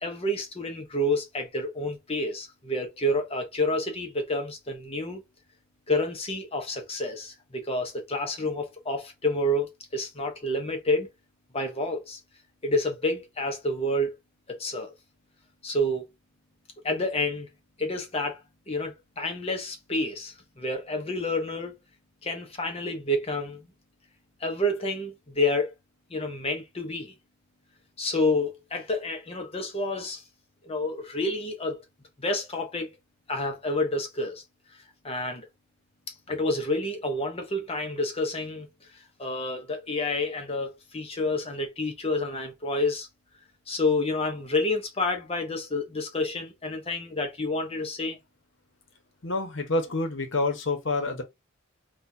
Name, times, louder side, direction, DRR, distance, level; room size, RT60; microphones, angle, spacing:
voice 1, 0.0-5.2 5.9-11.1 11.5-12.2 12.6-14.1 14.5-14.9 15.6-16.1 16.8-17.5 17.8-18.4 18.7-21.7 22.2-23.7 24.4-25.7 26.1-27.1 28.0-30.2 30.6-31.8 32.2-32.9 33.3-34.4 35.0-35.4 36.3-38.7 38.9-43.1 43.7-48.2, left 1 dB, 30° left, 0.8 m, -29 dB
voice 2, 49.2-51.2, left 2 dB, 65° left, 1.0 m, -27 dB
4.3 x 2.4 x 2.7 m
head